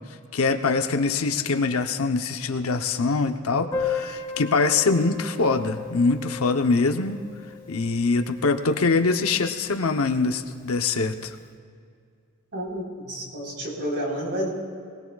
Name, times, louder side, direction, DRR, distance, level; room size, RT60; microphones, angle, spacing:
voice 1, 0.3-7.2 7.7-11.4, left 4 dB, 70° left, 7 dB, 0.8 m, -23 dB
Piano, 3.7-9.1 9.3-9.4 9.6-9.8 10.1-10.2 11.0-11.2, left 5 dB, 15° left, 2.9 m, -35 dB
voice 2, 12.5-14.5, equal, 55° right, -2 dB, 4.0 m, -30 dB
22.5 x 19.5 x 2.3 m, 2.3 s
head